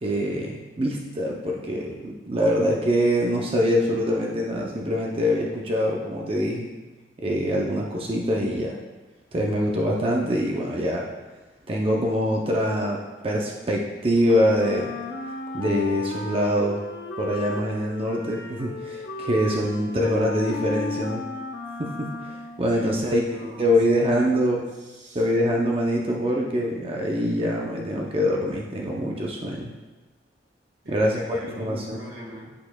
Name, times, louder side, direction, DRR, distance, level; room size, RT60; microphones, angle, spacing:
voice 1, 0.0-6.7 7.2-8.8 9.3-11.1 11.7-14.9 15.5-16.8 17.2-21.2 21.8-23.2 23.6-24.7 25.1-29.7 30.9-32.0, equal, 30° right, -1 dB, 0.5 m, -24 dB
Wind instrument woodwind instrument, 14.6-22.7, left 3 dB, 75° left, 0.6 m, -34 dB
voice 2, 22.7-25.5 30.8-32.5, equal, 90° right, -2 dB, 1.6 m, -42 dB
11.5 x 4.2 x 2.2 m, 1.2 s
head